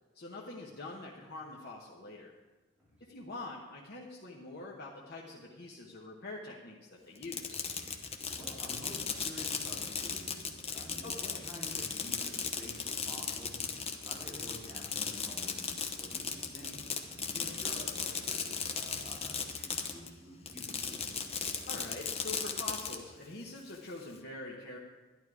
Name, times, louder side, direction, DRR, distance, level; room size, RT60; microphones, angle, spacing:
voice 1, 0.1-2.3 3.0-6.8 7.1-7.6 11.0-11.5 17.3-17.5 21.7-24.8, left 2 dB, 55° left, -2 dB, 1.1 m, -45 dB
Fireworks, 7.2-20.1 20.5-23.0, left 6 dB, 30° left, 0.9 m, -36 dB
voice 2, 8.4-13.7 14.0-21.1, equal, 5° right, -8 dB, 3.6 m, -49 dB
11.5 x 11.5 x 4.8 m, 1.2 s
head